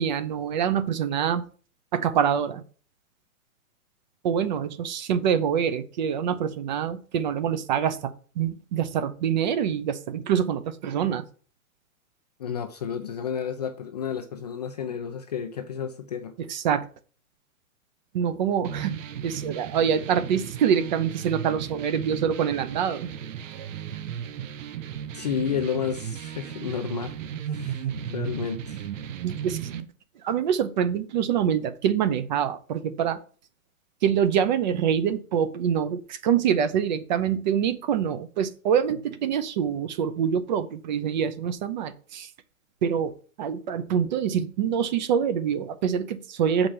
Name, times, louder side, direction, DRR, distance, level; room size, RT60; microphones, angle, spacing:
voice 1, 0.0-1.4 1.9-2.6 4.2-11.2 16.5-16.9 18.1-18.9 19.2-23.1 23.5-23.7 29.2-29.9 30.2-33.2 34.0-42.3 42.8-46.7, right 8 dB, 35° right, 0.7 m, -25 dB
voice 2, 12.4-16.3 25.1-27.2 27.5-28.9, left 8 dB, 30° left, 0.4 m, -31 dB
sound 1, 18.6-29.8, right 9 dB, 65° right, 0.9 m, -35 dB
7.5 x 5.0 x 5.5 m
hypercardioid pair, 160°, 42 cm